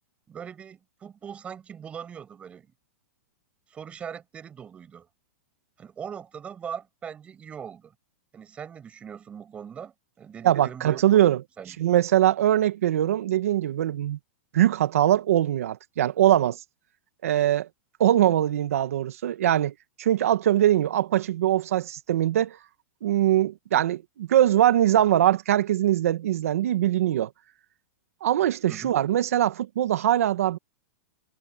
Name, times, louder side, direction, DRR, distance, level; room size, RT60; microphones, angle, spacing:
voice 1, 0.3-2.7 3.7-5.1 5.8-7.9 8.3-11.0 11.6-11.8 28.7-28.9, right 7 dB, 15° right, 5.8 m, -40 dB
voice 2, 10.4-11.4 11.8-14.2 14.5-16.6 17.2-17.7 18.0-19.7 20.0-22.6 23.0-27.3 28.2-30.6, right 12 dB, 75° right, 1.7 m, -22 dB
supercardioid pair, 160°, 8 cm